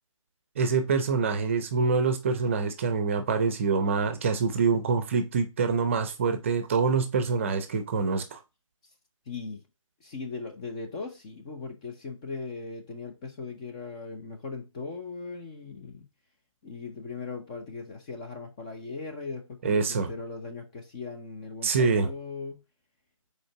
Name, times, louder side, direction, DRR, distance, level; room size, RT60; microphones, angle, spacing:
voice 1, 0.6-8.4 19.6-20.1 21.6-22.1, right 5 dB, 25° right, 0.7 m, -25 dB
voice 2, 9.3-9.6 10.0-16.1 16.6-22.6, left 4 dB, 15° left, 0.6 m, -39 dB
5.1 x 4.5 x 5.9 m
figure-of-eight pair, 150°, 17 cm